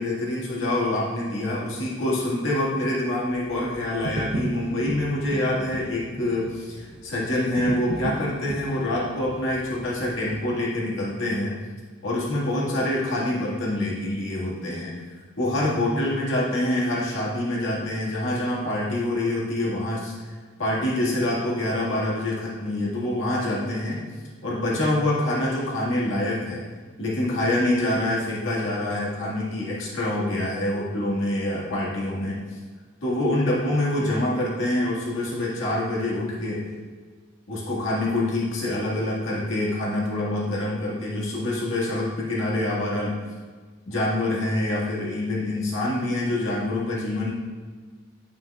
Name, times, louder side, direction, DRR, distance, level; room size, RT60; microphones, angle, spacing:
voice 1, 0.0-11.5 12.0-14.9 15.4-20.1 20.6-24.0 24.4-26.6 27.0-32.4 33.0-36.7 37.5-43.1 43.9-47.3, left 1 dB, 80° left, -6 dB, 1.8 m, -26 dB
sound 1, 3.3-10.5, right 1 dB, 60° right, 0.5 m, -35 dB
9.8 x 5.0 x 2.3 m, 1.5 s
head